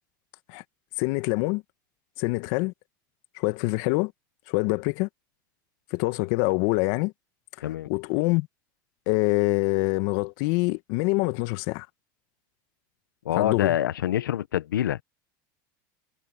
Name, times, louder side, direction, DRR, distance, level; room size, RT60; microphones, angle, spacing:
voice 1, 1.0-1.6 2.2-2.7 3.3-4.1 4.5-5.1 5.9-7.1 7.9-8.5 9.1-11.9 13.3-13.8, left 24 dB, 65° left, 1.6 m, -25 dB
voice 2, 13.2-15.0, left 11 dB, 90° left, 1.1 m, -26 dB
hypercardioid pair, 95°, 11 cm